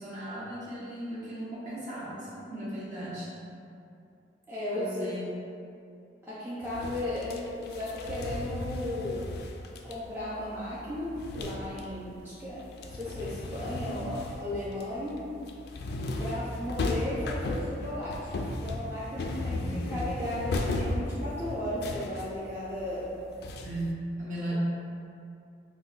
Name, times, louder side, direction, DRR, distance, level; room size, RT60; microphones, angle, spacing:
voice 1, 0.0-3.3 4.7-5.2 19.4-19.9 23.6-24.5, right 1 dB, 45° right, -9 dB, 1.0 m, -37 dB
voice 2, 4.5-5.1 6.2-9.3 9.8-15.2 16.2-18.3 18.6-23.1, left 1 dB, 15° right, -10 dB, 0.5 m, -35 dB
sound 1, 6.6-12.1 12.4-23.9, left 2 dB, 65° left, 0.3 m, -36 dB
5.6 x 2.1 x 2.5 m, 2.5 s
head